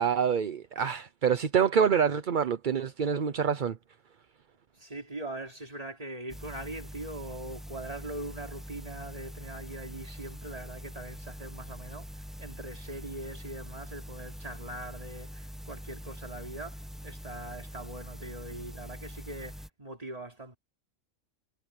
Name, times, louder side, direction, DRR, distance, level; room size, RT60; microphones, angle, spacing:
voice 1, 0.0-3.8, right 7 dB, 45° right, 0.7 m, -26 dB
voice 2, 4.7-20.6, right 1 dB, 25° right, 3.4 m, -42 dB
sound 1, 6.3-19.7, equal, ahead, 1.1 m, -44 dB
omnidirectional pair, 1.5 m